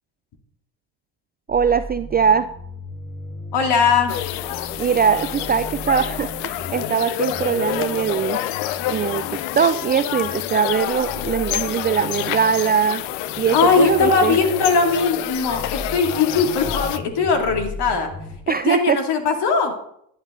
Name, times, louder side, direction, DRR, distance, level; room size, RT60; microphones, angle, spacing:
sound 1, 1.5-18.4, left 2 dB, 25° left, 4.3 m, -37 dB
voice 1, 1.5-2.5 4.8-8.4 8.9-13.0 13.4-14.4 18.5-19.0, right 7 dB, 25° right, 12 dB, 0.3 m, -21 dB
voice 2, 3.5-4.2 13.5-18.1 18.5-19.7, left 4 dB, 55° left, 4 dB, 2.7 m, -19 dB
sound 2, 4.1-17.0, left 14 dB, 70° left, 0.8 m, -28 dB
11.5 x 10.5 x 3.8 m, 0.72 s
hypercardioid pair, 75°, 48 cm